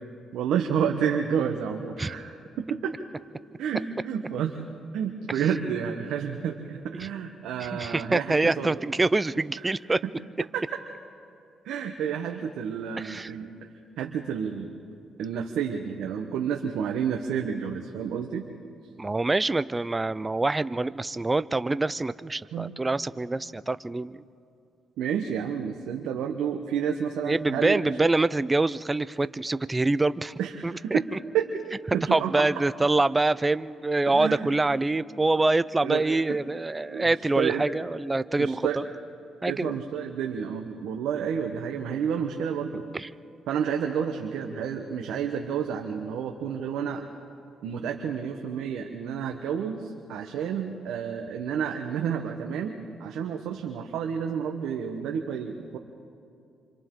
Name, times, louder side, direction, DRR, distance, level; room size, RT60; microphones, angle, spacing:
voice 1, 0.3-2.9 3.6-4.6 4.9-8.8 9.6-9.7 10.5-10.6 11.6-13.5 14.0-14.8 15.2-18.5 22.5-22.7 25.0-28.1 30.4-31.0 31.3-31.5 31.9-32.5 34.1-34.5 35.8-36.0 36.9-37.6 38.4-38.8 39.5-42.9 43.5-47.0 47.6-55.8, right 7 dB, 85° right, 4 dB, 1.1 m, -30 dB
voice 2, 7.6-10.0 13.0-13.3 19.0-24.2 27.2-31.2 32.1-38.8 39.4-39.8 42.9-43.1, right 2 dB, 20° right, 16 dB, 0.5 m, -25 dB
27.5 x 25.5 x 3.8 m, 2.5 s
cardioid pair, 90°, 0 cm